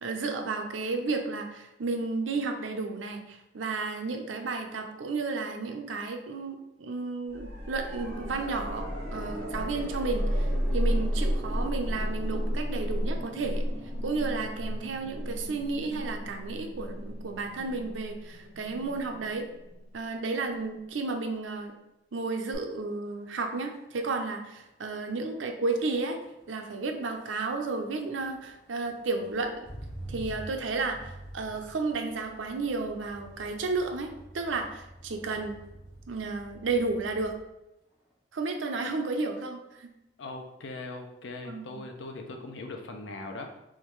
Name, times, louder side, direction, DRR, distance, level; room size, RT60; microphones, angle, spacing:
voice 1, 0.0-10.5 10.7-13.6 14.0-19.4 19.9-21.7 22.1-26.2 26.5-29.7 30.1-34.1 34.3-35.6 36.1-37.3 38.3-39.9 41.5-41.8, right 3 dB, 85° right, 5 dB, 0.5 m, -32 dB
sound 1, 7.3-20.2 22.5-22.6, equal, 45° right, 1.2 m, -32 dB
Motor vehicle (road), 22.5-22.7 23.1-37.5 37.9-38.3, right 1 dB, 5° right, 1.2 m, -48 dB
voice 2, 40.2-43.6, left 2 dB, 70° left, 4 dB, 0.6 m, -40 dB
3.5 x 3.1 x 3.1 m, 0.90 s
head